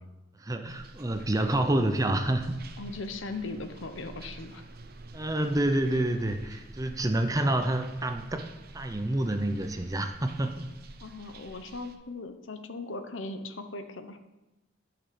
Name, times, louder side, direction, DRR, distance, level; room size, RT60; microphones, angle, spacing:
voice 1, 0.4-2.5 5.1-8.5 8.7-10.7, right 1 dB, 15° right, 6 dB, 0.7 m, -28 dB
sound 1, 0.7-12.0, right 2 dB, 50° right, 0.7 m, -48 dB
voice 2, 2.8-4.6 11.0-14.2, left 3 dB, 75° left, 8 dB, 0.9 m, -38 dB
10.5 x 6.0 x 6.9 m, 1.0 s
head